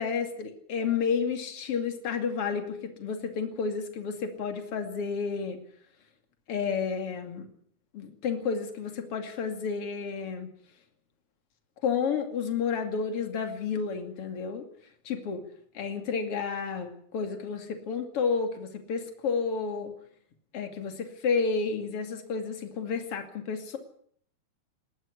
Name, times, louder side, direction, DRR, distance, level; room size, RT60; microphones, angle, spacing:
voice 1, 0.0-5.6 6.5-7.5 7.9-10.5 11.8-14.6 15.0-15.4 15.7-19.9 20.5-23.8, left 5 dB, 50° left, 6 dB, 3.3 m, -31 dB
20.0 x 14.0 x 9.9 m, 0.63 s
omnidirectional pair, 3.5 m